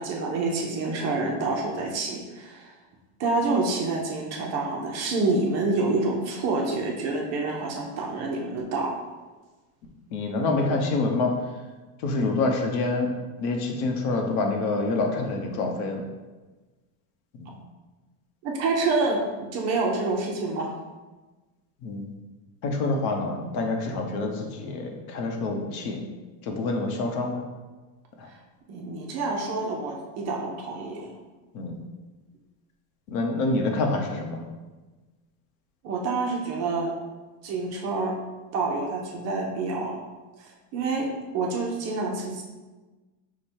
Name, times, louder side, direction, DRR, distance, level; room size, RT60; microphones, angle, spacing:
voice 1, 0.0-2.7 3.2-9.0 18.4-20.7 28.7-31.1 35.8-36.9 37.4-38.2 38.5-40.1 40.4-41.1 41.3-42.4, right 3 dB, 35° right, 0 dB, 0.5 m, -27 dB
voice 2, 10.1-11.3 12.0-13.1 13.4-16.0 17.4-17.6 21.8-22.0 22.6-26.0 26.4-27.4 28.2-28.3 31.5-31.8 33.1-34.4, left 3 dB, 65° left, 3 dB, 0.9 m, -27 dB
4.7 x 2.2 x 4.3 m, 1.2 s
cardioid pair, 160°, 47 cm